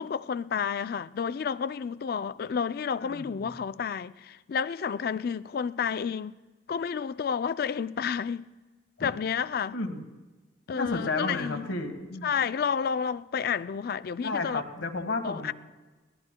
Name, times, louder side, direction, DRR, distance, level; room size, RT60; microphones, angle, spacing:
voice 1, 0.0-6.4 6.7-8.5 9.0-9.8 10.7-11.7 12.2-14.6 15.2-15.5, left 6 dB, 50° left, 0.3 m, -30 dB
voice 2, 3.0-3.5 9.0-9.1 9.7-10.1 10.7-12.3 14.2-15.5, left 3 dB, 80° left, 1.4 m, -32 dB
22.5 x 17.0 x 2.2 m
head